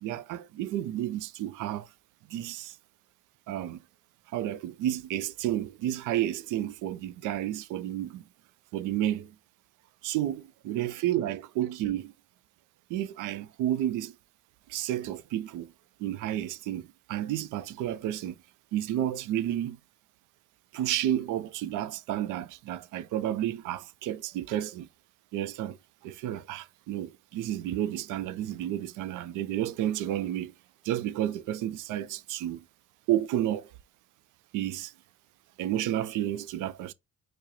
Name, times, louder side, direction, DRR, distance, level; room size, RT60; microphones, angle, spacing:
voice 1, 0.0-1.9 2.3-2.8 3.5-3.8 4.3-8.2 8.7-9.3 10.0-12.1 12.9-14.1 14.7-15.7 16.0-18.4 18.7-19.8 20.7-24.9 25.3-25.8 26.0-30.5 30.8-32.6 33.1-33.7 34.5-34.9 35.6-36.9, right 12 dB, 90° right, 0.5 m, -31 dB
4.6 x 2.1 x 2.9 m
cardioid pair, 90°, 30 cm